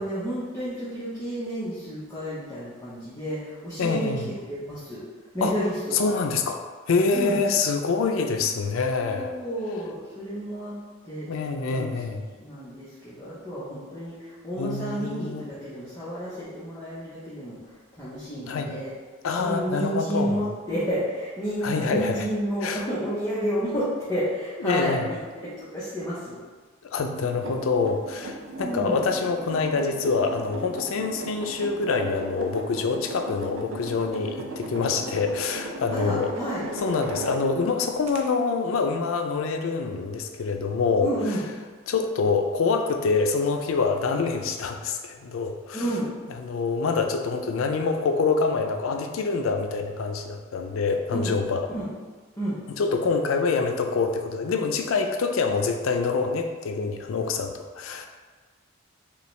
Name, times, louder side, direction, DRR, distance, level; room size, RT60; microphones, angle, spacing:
voice 1, 0.0-4.1 4.4-5.0 5.3-6.1 7.1-7.4 9.1-10.8 11.0-17.6 18.0-18.9 19.4-25.2 25.6-26.4 28.6-29.0 35.9-36.6 41.0-41.4 45.7-46.1 51.1-51.3 51.7-51.8 52.4-52.6, equal, 15° left, -11 dB, 0.9 m, -31 dB
voice 2, 3.8-4.3 5.4-5.5 5.9-6.6 6.9-9.4 11.3-12.2 14.6-15.5 18.5-18.7 19.2-20.5 21.6-22.2 22.6-22.8 24.6-25.1 26.9-36.3 36.8-41.1 41.9-45.9 46.4-51.7 52.8-58.1, left 4 dB, 85° left, 5 dB, 0.4 m, -26 dB
sound 1, 27.2-37.7 38.1-38.2, right 2 dB, 70° right, 0.5 m, -37 dB
5.5 x 2.3 x 3.2 m, 1.4 s
head